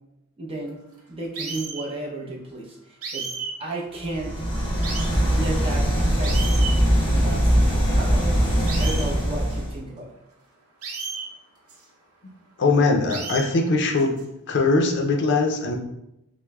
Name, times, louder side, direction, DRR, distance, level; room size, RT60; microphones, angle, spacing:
voice 1, 0.4-0.8 1.1-2.8 3.1-3.3 3.6-4.4 5.4-6.6 7.0-10.1, right 2 dB, 25° right, -1 dB, 0.6 m, -33 dB
sound 1, 1.3-1.9 3.0-3.5 4.0-4.1 4.8-5.1 5.7-5.8 6.2-6.7 7.2-7.3 7.6-7.7 8.7-9.1 9.5-9.6 10.8-11.2 11.7-11.8 13.1-13.5 14.0-14.2, right 5 dB, 85° right, 0.7 m, -32 dB
sound 2, 4.1-9.8, equal, 25° left, 0.8 m, -21 dB
voice 2, 12.6-14.2 14.5-15.8, left 3 dB, 55° left, 2 dB, 0.5 m, -21 dB
5.9 x 2.1 x 2.3 m, 0.86 s
head